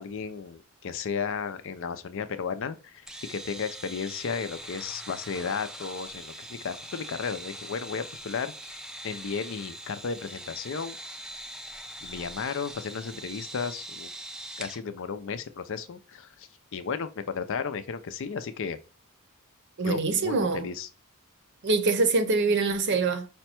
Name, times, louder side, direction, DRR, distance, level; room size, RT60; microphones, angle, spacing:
voice 1, 0.0-11.0 12.0-14.1 14.6-18.8 19.8-20.9, left 6 dB, 60° left, 0.5 m, -34 dB
sound 1, 3.1-14.8, right 1 dB, 5° right, 0.4 m, -42 dB
voice 2, 19.8-20.7 21.6-23.3, right 3 dB, 55° right, 0.7 m, -24 dB
5.1 x 2.2 x 4.3 m
head